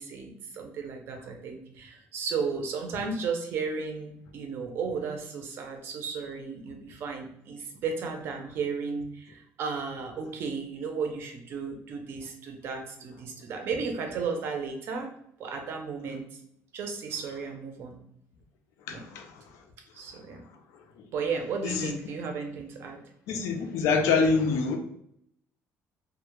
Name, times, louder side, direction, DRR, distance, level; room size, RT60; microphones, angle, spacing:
voice 1, 0.0-15.1 15.4-16.4 16.7-18.0 18.9-19.1 19.9-20.4 21.1-23.0, right 5 dB, 50° right, 0.4 m, -34 dB
voice 2, 18.9-19.4 21.0-21.1 21.6-21.9 23.3-24.8, left 4 dB, 80° left, 0.4 m, -26 dB
2.1 x 2.0 x 2.9 m
cardioid pair, 180°, 5 cm